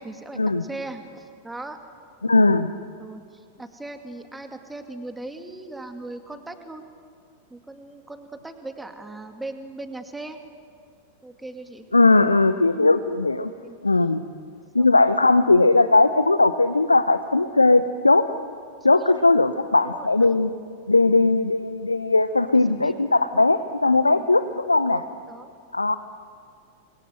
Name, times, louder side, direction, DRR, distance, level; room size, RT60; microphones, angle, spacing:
voice 1, 0.0-1.8 3.0-6.8 7.5-10.4 11.2-11.9 12.7-12.9 13.6-13.8 14.8-14.9 18.9-19.3 19.8-20.4 22.8-23.0 23.3-23.5 24.1-24.3 24.8-25.5, right 2 dB, 5° right, 6 dB, 2.3 m, -39 dB
voice 2, 2.2-2.7 11.9-13.5 13.8-14.2 14.7-18.3 18.8-20.5 20.9-25.0 25.7-26.0, left 3 dB, 80° left, 11 dB, 0.7 m, -18 dB
29.0 x 22.5 x 7.7 m, 2.2 s
figure-of-eight pair, 90°, 0 cm